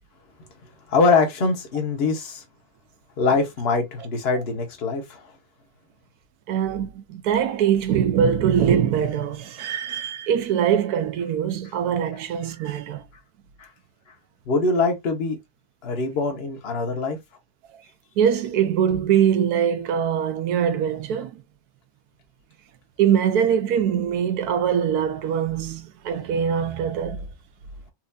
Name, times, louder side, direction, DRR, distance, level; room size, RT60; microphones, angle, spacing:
voice 1, 0.9-2.4 3.2-5.2 13.6-13.7 14.5-15.4 15.8-17.2, left 4 dB, 45° left, 1.1 m, -23 dB
voice 2, 6.5-13.0 18.2-21.3 23.0-27.3, right 8 dB, 85° right, 1.2 m, -22 dB
4.4 x 2.6 x 2.3 m
omnidirectional pair, 1.6 m